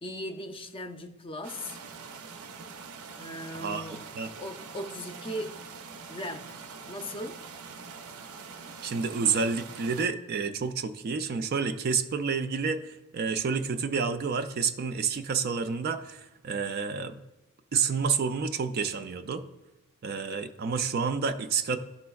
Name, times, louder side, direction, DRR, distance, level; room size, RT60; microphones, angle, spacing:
voice 1, 0.0-1.8 3.2-4.0 4.4-5.5 6.1-6.5 6.8-7.4, left 1 dB, 25° left, 6 dB, 0.5 m, -38 dB
sound 1, 1.4-10.1, right 5 dB, 85° right, 0.6 m, -44 dB
voice 2, 3.5-4.3 8.8-17.2 17.7-19.4 20.0-21.8, right 5 dB, 45° right, 8 dB, 0.4 m, -29 dB
12.0 x 4.2 x 2.3 m, 1.0 s
head